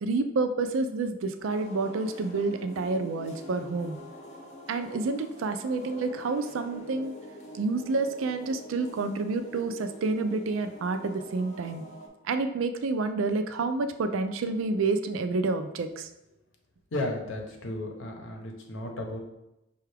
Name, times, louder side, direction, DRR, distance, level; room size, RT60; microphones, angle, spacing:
voice 1, 0.0-4.0 4.7-7.1 7.5-11.8 12.2-16.1, right 3 dB, 80° right, 9 dB, 0.4 m, -29 dB
sound 1, 1.4-12.1, equal, 35° left, 0.6 m, -46 dB
voice 2, 16.9-19.2, left 1 dB, 70° left, 2 dB, 0.8 m, -34 dB
5.5 x 2.3 x 3.3 m, 0.91 s
head